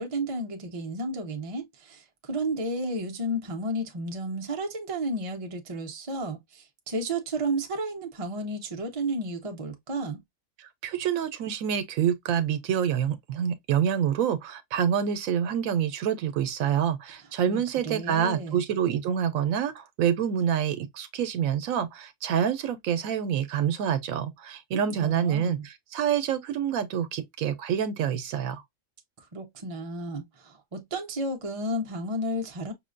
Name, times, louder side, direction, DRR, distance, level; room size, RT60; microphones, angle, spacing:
voice 1, 0.0-10.2 17.5-18.6 24.7-25.7 29.3-32.7, right 1 dB, 35° right, 0.6 m, -32 dB
voice 2, 10.6-28.6, right 9 dB, 80° right, 1.0 m, -27 dB
5.6 x 2.2 x 2.4 m
omnidirectional pair, 1.4 m